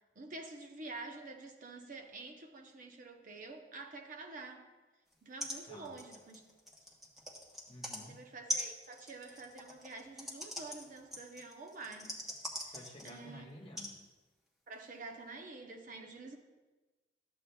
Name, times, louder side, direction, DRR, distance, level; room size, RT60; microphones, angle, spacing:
voice 1, 0.2-4.7 5.2-6.4 8.1-12.2 12.5-12.7 13.0-13.4 14.7-16.4, right 3 dB, 50° right, 3 dB, 0.8 m, -48 dB
sound 1, 5.1-5.2 5.4-5.6 5.8-8.0 8.5-13.3 13.8-13.9 14.7-14.8, left 1 dB, ahead, 1.0 m, -42 dB
voice 2, 5.7-6.0 7.7-8.2 12.7-14.0, left 1 dB, 30° left, 1 dB, 1.1 m, -51 dB
13.0 x 7.7 x 2.3 m, 1.2 s
head